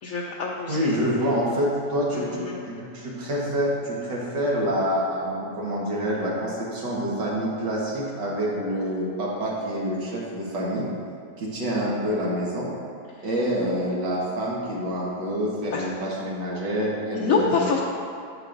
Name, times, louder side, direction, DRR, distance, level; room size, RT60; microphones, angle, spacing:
voice 1, 0.0-1.0 2.1-2.7 15.7-15.9 17.1-17.8, left 5 dB, 65° left, -2 dB, 0.9 m, -26 dB
voice 2, 0.7-10.9 11.4-12.7 13.2-17.7, equal, 90° right, -5 dB, 2.1 m, -27 dB
9.3 x 8.1 x 2.6 m, 2.4 s
omnidirectional pair, 1.9 m